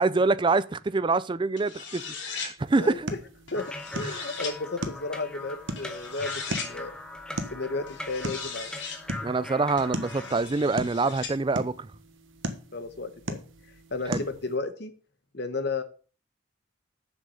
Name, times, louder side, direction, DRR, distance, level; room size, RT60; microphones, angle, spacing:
voice 1, 0.0-3.1 4.0-4.3 9.2-11.9 14.1-14.2, right 3 dB, 25° right, 0.4 m, -26 dB
sound 1, 1.6-2.5 3.5-4.5 5.8-6.7 7.9-9.0 9.8-11.3, left 5 dB, 70° left, 2.7 m, -38 dB
sound 2, 2.6-14.6, right 1 dB, 80° right, 1.3 m, -39 dB
sound 3, 3.5-10.4, left 2 dB, 5° left, 0.9 m, -40 dB
voice 2, 3.9-6.9 7.5-8.7 12.7-13.4 13.9-14.9 15.3-15.8, left 3 dB, 55° left, 1.2 m, -33 dB
7.2 x 6.4 x 6.9 m
head